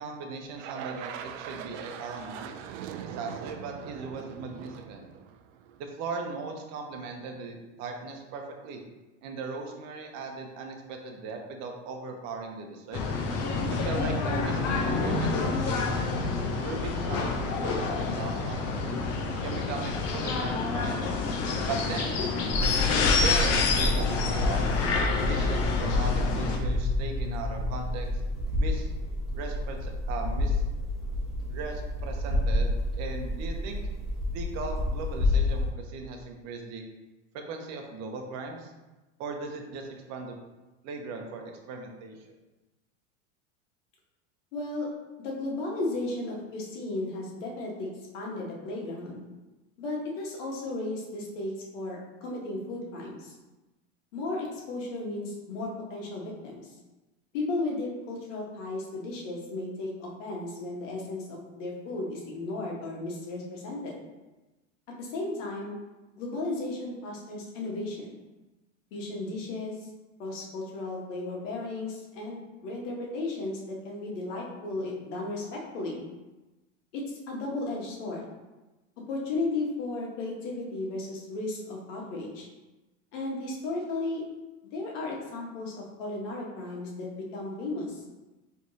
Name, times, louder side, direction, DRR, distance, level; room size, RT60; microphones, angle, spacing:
voice 1, 0.0-2.5 3.0-5.1 5.8-8.8 9.2-13.0 13.8-16.1 16.6-19.0 19.4-21.3 21.6-22.2 23.1-24.7 25.2-28.1 28.6-28.9 29.3-30.6 31.5-33.8 34.3-36.8 37.3-38.7 39.2-40.4 40.8-42.3, right 4 dB, 45° right, 3 dB, 0.8 m, -38 dB
sound 1, 0.6-5.9, right 9 dB, 70° right, 0.5 m, -41 dB
sound 2, 12.9-26.6, left 4 dB, 40° left, 0.7 m, -28 dB
sound 3, 22.5-35.7, left 2 dB, ahead, 1.4 m, -29 dB
voice 2, 44.5-44.9 45.2-47.9 48.1-49.2 49.8-53.3 54.1-56.7 57.3-64.0 65.0-65.7 66.1-68.1 68.9-69.7 70.2-76.0 76.9-78.3 79.1-82.5 83.1-84.3 84.7-88.0, left 2 dB, 70° left, -2 dB, 1.5 m, -34 dB
4.7 x 3.4 x 2.8 m, 1.1 s
supercardioid pair, 125°, 38 cm